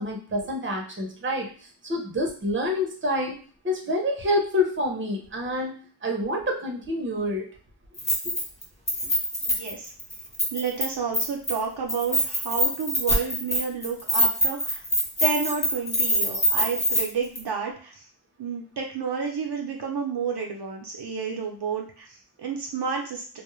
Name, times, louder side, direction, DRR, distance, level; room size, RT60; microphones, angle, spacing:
voice 1, 0.0-1.5 1.8-7.5 8.2-8.4, left 1 dB, 25° right, 1 dB, 0.7 m, -27 dB
Keys jangling, 8.0-8.6 8.9-10.8 11.1-11.6 11.9-17.0 17.4-17.5, equal, 15° left, 0.9 m, -24 dB
voice 2, 9.4-9.9 10.5-14.8 15.2-18.0 18.4-23.4, right 6 dB, 65° right, 0 dB, 0.6 m, -30 dB
2.3 x 2.0 x 3.0 m, 0.42 s
wide cardioid pair, 60°, 43 cm